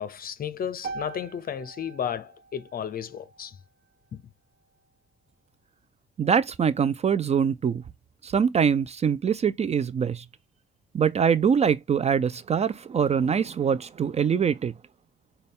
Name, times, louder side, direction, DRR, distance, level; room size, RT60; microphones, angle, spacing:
voice 1, 0.0-3.6 4.1-4.2, left 8 dB, 50° left, 0.6 m, -33 dB
sound 1, 0.8-5.0, right 4 dB, 60° right, 0.9 m, -43 dB
voice 2, 6.2-7.8 8.2-10.2 10.9-14.7, right 7 dB, 35° right, 0.4 m, -23 dB
6.5 x 2.3 x 3.5 m
cardioid pair, 90°, 20 cm